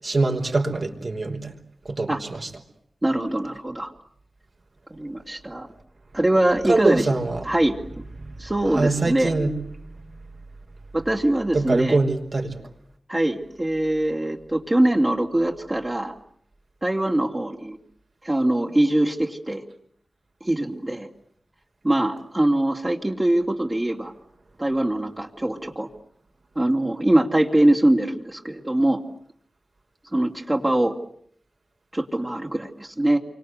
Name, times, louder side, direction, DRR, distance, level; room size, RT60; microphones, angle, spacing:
voice 1, 0.0-1.5 1.8-2.5 6.6-7.5 8.2-8.4 8.7-9.6 11.5-12.6, right 3 dB, 60° right, 3 dB, 5.6 m, -23 dB
voice 2, 3.0-3.9 4.9-5.7 6.1-7.0 7.4-7.8 8.4-9.3 10.9-12.0 13.1-16.1 16.8-17.8 18.2-19.6 20.4-21.1 21.8-24.1 24.6-25.9 26.5-29.0 30.1-30.9 31.9-33.2, right 1 dB, 25° right, 0 dB, 3.1 m, -22 dB
29.0 x 25.0 x 8.0 m, 0.68 s
cardioid pair, 50°, 0 cm